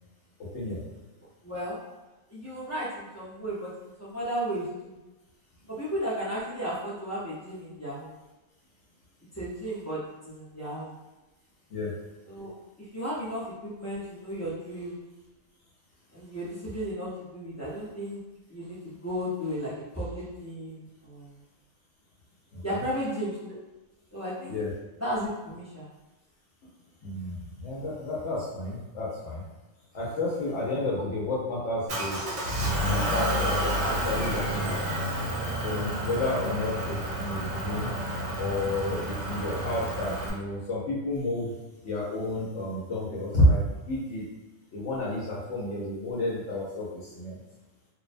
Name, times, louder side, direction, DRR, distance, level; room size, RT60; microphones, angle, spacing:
voice 1, 0.5-0.9 11.7-12.0 22.5-22.8 24.5-24.7 27.0-29.4 29.9-32.3 32.8-34.8 35.6-38.0 38.4-41.5 41.8-43.6 43.9-44.3 44.7-47.4, left 1 dB, 70° left, -6 dB, 0.9 m, -30 dB
voice 2, 1.4-1.8 2.3-5.0 5.8-8.1 9.4-10.0 10.3-10.9 12.3-12.5 12.9-15.0 16.1-18.2 18.5-21.3 22.6-23.6 24.1-24.6 25.0-25.9, equal, 25° left, -9 dB, 0.3 m, -34 dB
Motor vehicle (road) / Engine, 31.9-40.3, equal, 75° right, 1.0 m, -30 dB
2.4 x 2.1 x 2.5 m, 1.1 s
omnidirectional pair, 1.3 m